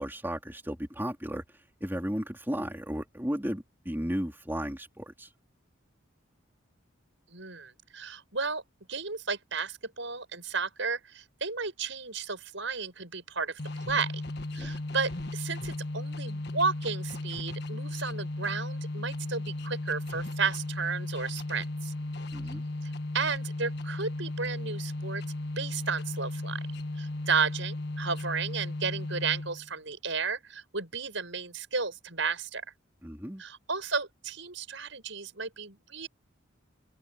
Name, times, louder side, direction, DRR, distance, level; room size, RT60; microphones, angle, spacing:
voice 1, 0.0-1.4 1.8-5.3 14.6-14.7 22.3-22.6 33.0-33.4, equal, 10° right, 3.4 m, -34 dB
voice 2, 7.3-8.6 8.9-13.6 13.9-14.1 14.5-21.9 23.1-25.2 25.6-26.6 27.0-32.6 33.4-36.1, right 5 dB, 65° right, 7.2 m, -33 dB
sound 1, 13.6-29.7, left 2 dB, 50° left, 1.6 m, -36 dB
head